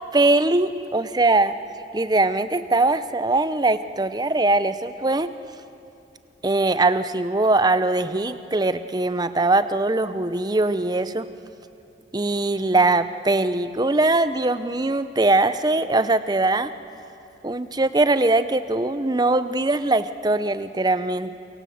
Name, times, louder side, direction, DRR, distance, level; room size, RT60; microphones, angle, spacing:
voice 1, 0.1-1.5 1.9-5.3 6.4-11.3 12.1-16.7 17.4-21.4, right 2 dB, 20° right, 12 dB, 0.6 m, -21 dB
28.5 x 24.0 x 7.8 m, 2.8 s
head